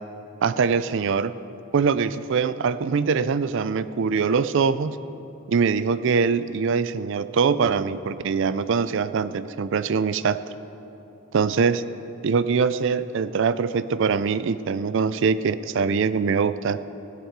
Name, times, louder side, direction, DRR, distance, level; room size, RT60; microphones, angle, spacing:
voice 1, 0.4-1.3 1.7-5.0 5.5-10.4 11.3-11.8 12.2-16.8, right 5 dB, 60° right, 14 dB, 0.4 m, -23 dB
16.5 x 10.5 x 4.6 m, 3.0 s
head